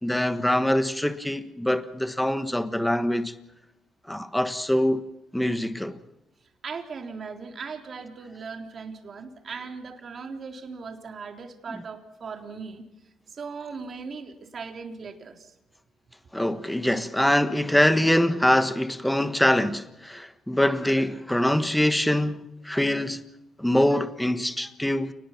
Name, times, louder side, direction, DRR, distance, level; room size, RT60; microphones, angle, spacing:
voice 1, 0.0-3.3 4.1-5.0 5.3-6.0 16.3-23.2 23.6-25.1, left 1 dB, 5° left, 1.4 m, -24 dB
voice 2, 6.6-12.8 13.3-15.5, right 5 dB, 50° right, 3.7 m, -38 dB
29.5 x 20.0 x 6.0 m
cardioid pair, 90°, 0 cm